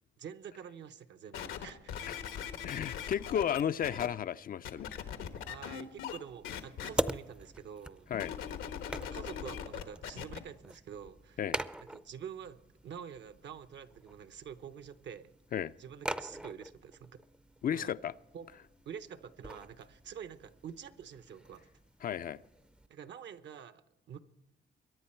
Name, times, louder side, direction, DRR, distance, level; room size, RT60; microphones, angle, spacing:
voice 1, 0.2-2.1 5.5-8.1 9.0-11.4 11.8-15.3 15.8-17.2 17.7-17.9 18.3-18.5 18.9-21.7 22.9-24.2, right 8 dB, 65° right, 0.9 m, -47 dB
sound 1, 1.3-4.1 4.6-6.2 6.4-6.9 8.1-10.4 11.1-11.2, left 9 dB, 90° left, 1.3 m, -40 dB
voice 2, 2.6-5.0 8.1-8.3 11.4-11.6 15.5-15.7 17.6-18.1 22.0-22.4, left 9 dB, 45° left, 0.4 m, -33 dB
sound 2, 5.3-22.9, right 1 dB, 5° right, 0.5 m, -44 dB
22.5 x 10.0 x 4.4 m
cardioid pair, 90°, 20 cm